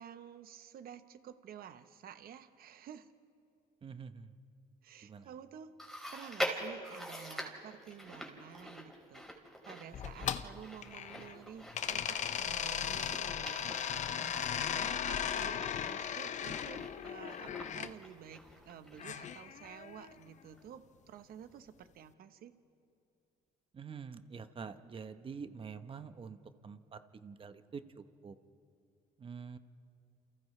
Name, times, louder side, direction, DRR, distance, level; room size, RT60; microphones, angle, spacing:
voice 1, 0.0-3.1 4.8-5.7 6.1-9.3 9.6-22.5, right 9 dB, 60° right, 10 dB, 1.1 m, -51 dB
voice 2, 3.8-4.3 5.0-5.3 23.7-26.4 26.6-28.3 29.2-29.6, right 6 dB, 30° right, 10 dB, 1.0 m, -46 dB
Chewing mastication, 5.8-19.3 19.6-19.7 20.6-20.7, equal, ahead, 3.2 m, -45 dB
sound 1, 9.9-11.4 11.7-17.9 19.0-20.1, left 8 dB, 45° left, 0.7 m, -37 dB
29.0 x 29.0 x 3.3 m, 2.6 s
cardioid pair, 110°, 17 cm